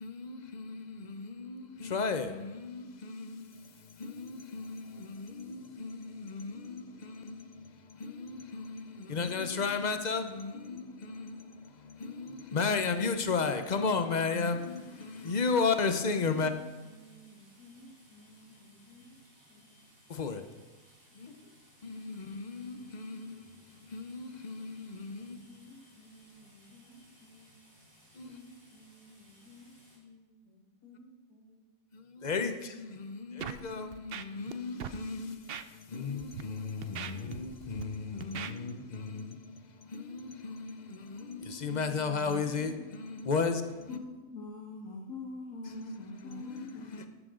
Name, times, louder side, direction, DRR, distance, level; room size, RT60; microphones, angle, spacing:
voice 1, 0.0-3.3 4.0-6.8 8.0-8.8 9.1-11.3 12.0-14.8 15.2-16.5 20.2-20.4 21.8-23.3 23.9-25.4 28.2-28.3 32.2-32.5 32.8-35.4 35.9-39.2 39.9-40.7 41.1-43.6 45.7-45.9 46.5-46.6 47.0-47.1, left 4 dB, 35° left, 0.8 m, -34 dB
sound 1, 14.6-30.0, equal, 35° right, 3.8 m, -62 dB
voice 2, 16.3-19.2 19.5-19.8 21.1-21.5 25.2-27.9 28.2-31.6, left 1 dB, 80° left, 2.9 m, -56 dB
Scratching (performance technique), 33.4-33.6 33.9-34.5 34.8-35.0 35.5-35.6 36.2-36.4 36.8-37.8 38.2-38.5, right 9 dB, 60° right, 0.6 m, -39 dB
voice 3, 43.9-47.1, left 3 dB, 60° left, 2.0 m, -43 dB
13.0 x 12.5 x 3.8 m
omnidirectional pair, 1.6 m